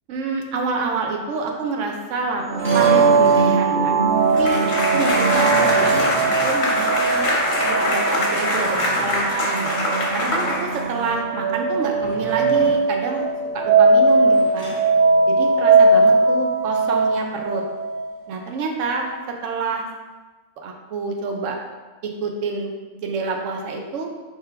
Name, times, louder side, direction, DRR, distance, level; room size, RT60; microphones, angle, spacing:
voice 1, 0.1-2.4 2.7-3.9 4.2-7.3 7.6-9.7 10.1-13.3 13.5-14.8 15.3-17.6 18.3-19.8 20.6-21.6 22.0-22.7 23.0-24.1, right 4 dB, 60° right, 2 dB, 0.9 m, -27 dB
sound 1, 2.5-3.6 5.1-7.3 7.6-7.7 8.5-9.4 11.9-12.9 14.2-14.9, equal, 10° right, 1.0 m, -34 dB
sound 2, 2.5-18.1, right 3 dB, 80° right, 0.5 m, -19 dB
sound 3, 4.3-11.1, left 1 dB, 55° left, 1.1 m, -23 dB
4.4 x 3.6 x 3.3 m, 1.2 s
omnidirectional pair, 1.6 m